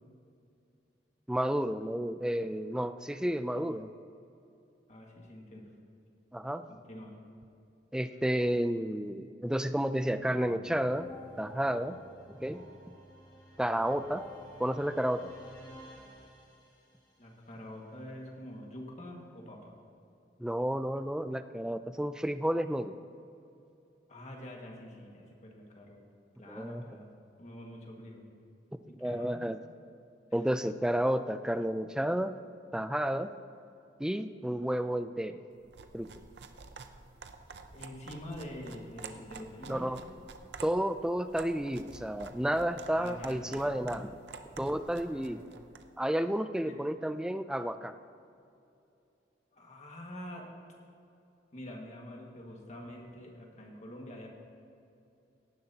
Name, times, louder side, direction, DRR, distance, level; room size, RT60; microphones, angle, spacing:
voice 1, 1.3-3.9 6.3-6.6 7.9-11.1 11.4-12.0 12.3-12.6 13.6-14.2 14.6-15.3 20.4-23.0 26.5-26.8 29.0-29.6 30.3-32.3 32.7-33.3 34.0-35.4 35.9-36.1 39.7-40.0 40.6-44.2 44.6-45.4 46.0-47.9, equal, 5° right, 10 dB, 0.3 m, -31 dB
voice 2, 4.9-5.7 6.7-7.1 17.2-19.7 24.1-26.0 26.4-27.1 27.4-28.2 28.9-29.4 30.3-30.4 37.7-40.0 42.9-43.6 45.1-45.5 46.6-46.8 49.5-50.5 51.5-54.3, left 1 dB, 40° left, 0 dB, 1.8 m, -46 dB
sound 1, 10.2-17.0, equal, 20° left, 1.7 m, -51 dB
sound 2, 35.6-45.9, right 4 dB, 65° right, 0.6 m, -49 dB
17.5 x 10.5 x 2.9 m, 2.6 s
head